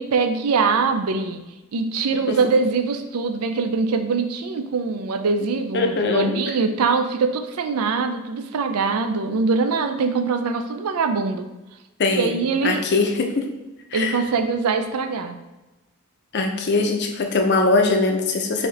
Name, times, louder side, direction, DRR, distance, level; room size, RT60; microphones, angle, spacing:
voice 1, 0.0-1.4 1.7-11.5 12.2-12.8 13.9-15.4, right 4 dB, 85° right, 7 dB, 0.5 m, -23 dB
voice 2, 5.7-6.4 12.0-13.5 13.9-14.2 16.3-18.7, left 3 dB, 50° left, 4 dB, 0.6 m, -21 dB
5.8 x 2.7 x 3.3 m, 1.1 s
head